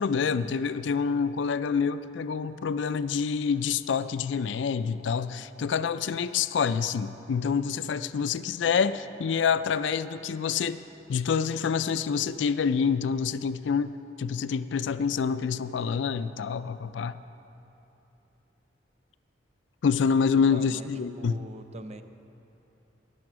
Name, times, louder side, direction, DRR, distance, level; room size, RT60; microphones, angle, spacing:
voice 1, 0.0-10.8 11.1-13.9 14.2-17.2 19.8-21.4, left 6 dB, 70° left, 13 dB, 0.4 m, -27 dB
voice 2, 20.3-20.9 21.2-22.0, right 2 dB, 35° right, 8 dB, 0.5 m, -43 dB
19.5 x 7.0 x 6.1 m, 3.0 s
head